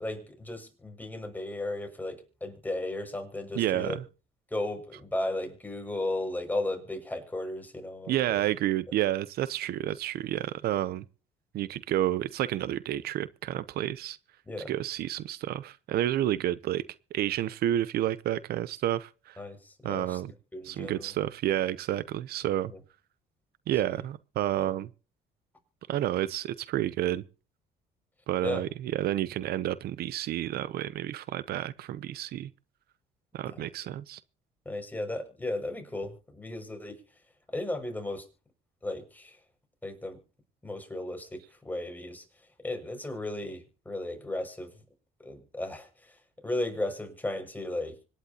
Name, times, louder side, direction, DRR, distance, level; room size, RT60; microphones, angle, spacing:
voice 1, 0.0-4.0 4.5-8.4 14.5-14.7 19.4-20.2 20.5-21.1 22.7-22.8 23.9-24.0 24.6-24.7 28.4-28.6 33.5-33.6 34.6-37.0 37.5-38.2 38.8-39.4 39.8-40.2 40.6-42.2 42.6-44.7 45.2-46.2 46.4-48.0, left 1 dB, 10° left, 6.2 m, -35 dB
voice 2, 3.6-4.0 8.1-11.0 11.5-14.2 14.7-16.8 17.1-19.4 19.8-20.3 20.6-22.7 23.7-24.9 25.9-27.2 28.3-32.5 33.3-34.2, right 13 dB, 70° right, 0.7 m, -30 dB
25.5 x 11.0 x 2.9 m
cardioid pair, 110°, 17 cm